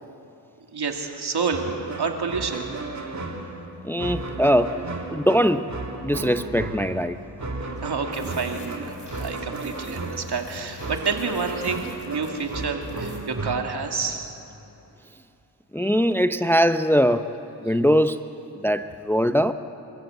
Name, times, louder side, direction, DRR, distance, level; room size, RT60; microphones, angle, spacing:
voice 1, 0.7-2.7 7.8-14.4 17.7-17.8, right 5 dB, 60° right, 3 dB, 2.6 m, -29 dB
sound 1, 1.5-13.6, right 3 dB, 40° right, 2.4 m, -34 dB
voice 2, 3.8-4.8 5.1-5.7 6.0-7.2 15.7-17.3 17.6-18.3 18.6-19.5, equal, 5° left, 10 dB, 0.7 m, -21 dB
sound 2, 7.8-13.2, left 2 dB, 40° left, 5.6 m, -46 dB
27.0 x 14.5 x 8.1 m, 2.9 s
cardioid pair, 50°, 45 cm